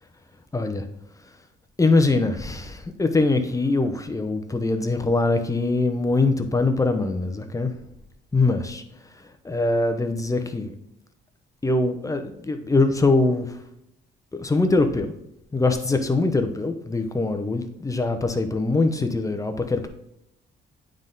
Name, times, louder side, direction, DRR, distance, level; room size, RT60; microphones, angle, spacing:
voice 1, 0.5-0.9 1.8-7.7 8.3-8.8 9.1-10.7 11.6-13.6 14.3-15.1 15.5-19.9, left 3 dB, 15° left, 7 dB, 0.8 m, -23 dB
8.8 x 3.8 x 3.9 m, 0.81 s
cardioid pair, 90°, 20 cm